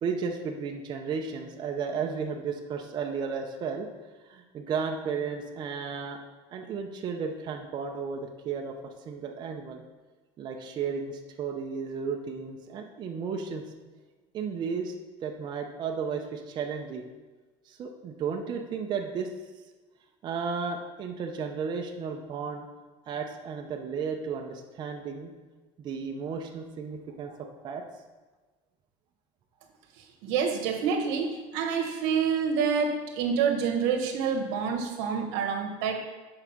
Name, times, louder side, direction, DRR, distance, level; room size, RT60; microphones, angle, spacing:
voice 1, 0.0-3.9 4.2-6.2 6.5-9.8 10.4-13.6 14.3-14.9 15.2-17.0 17.7-19.3 20.2-22.7 23.1-25.3 25.8-27.8, right 5 dB, 30° right, 2 dB, 0.6 m, -34 dB
voice 2, 30.2-36.0, right 6 dB, 85° right, 4 dB, 1.3 m, -27 dB
7.1 x 4.8 x 5.9 m, 1.3 s
cardioid pair, 165°, 14 cm